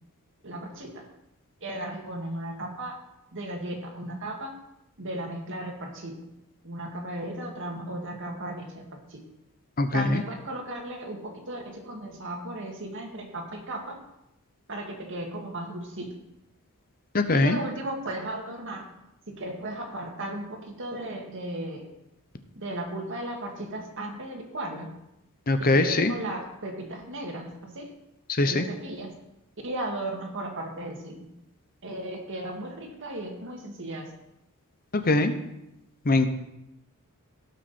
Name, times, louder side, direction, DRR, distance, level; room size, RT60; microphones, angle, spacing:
voice 1, 0.4-1.1 1.6-3.0 3.3-4.6 5.0-6.2 6.6-9.2 9.9-14.0 14.7-16.2 17.3-18.9 19.3-21.9 22.5-25.0 25.6-27.9 28.4-29.1 29.6-31.3 31.8-34.1, right 1 dB, 60° right, 2 dB, 2.1 m, -36 dB
voice 2, 9.8-10.2 17.1-17.6 25.5-26.1 28.3-28.6 34.9-35.3 36.0-36.3, left 2 dB, 40° left, 8 dB, 0.8 m, -22 dB
17.0 x 6.2 x 4.3 m, 0.87 s
head